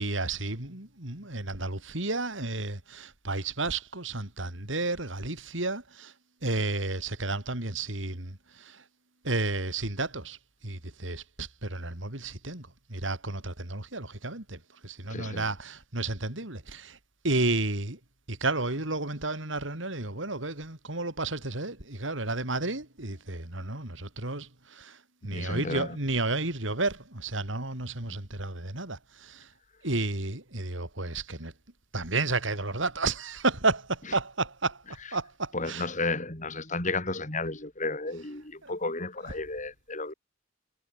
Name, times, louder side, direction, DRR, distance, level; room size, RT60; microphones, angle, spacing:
voice 1, 0.0-6.1 6.4-8.8 9.2-10.4 10.6-17.0 17.2-18.0 18.3-29.5 29.8-31.5 31.9-34.8 35.1-35.8 38.6-38.7, right 2 dB, 70° right, 4.3 m, -32 dB
voice 2, 15.1-15.5 25.3-26.0 34.1-34.2 35.5-40.1, left 3 dB, 40° left, 5.3 m, -33 dB
head